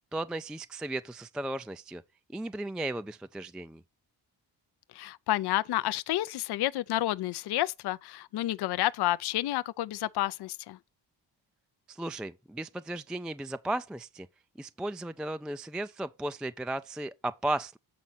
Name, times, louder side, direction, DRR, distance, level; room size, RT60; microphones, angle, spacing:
voice 1, 0.1-2.0 2.3-3.8 11.9-14.3 14.6-17.8, right 1 dB, ahead, 0.3 m, -35 dB
voice 2, 4.9-10.8, left 15 dB, 55° left, 0.5 m, -30 dB
7.7 x 4.1 x 5.6 m
cardioid pair, 60°, 47 cm